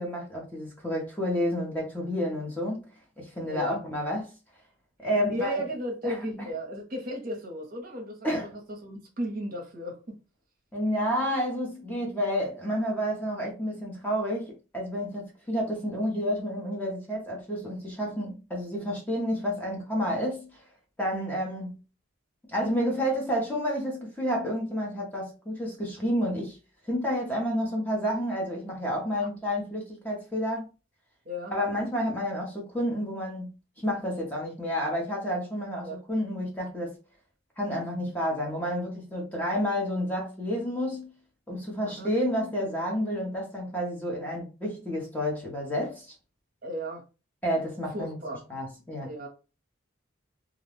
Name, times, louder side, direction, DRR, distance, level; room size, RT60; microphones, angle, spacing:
voice 1, 0.0-2.9 3.2-4.3 5.0-5.6 6.0-6.1 8.2-8.5 10.7-20.6 21.0-21.8 22.5-26.6 26.8-30.7 31.5-33.5 33.8-37.0 37.6-41.1 41.5-46.1 47.4-48.1 48.5-49.1, equal, 10° left, 0.6 m, -30 dB
voice 2, 3.4-3.8 5.1-8.3 8.5-10.2 29.2-29.3 31.2-31.5 35.8-36.0 41.9-42.1 46.6-47.0 47.9-48.4 49.0-49.3, equal, 45° right, 0.7 m, -35 dB
2.4 x 2.1 x 3.3 m
head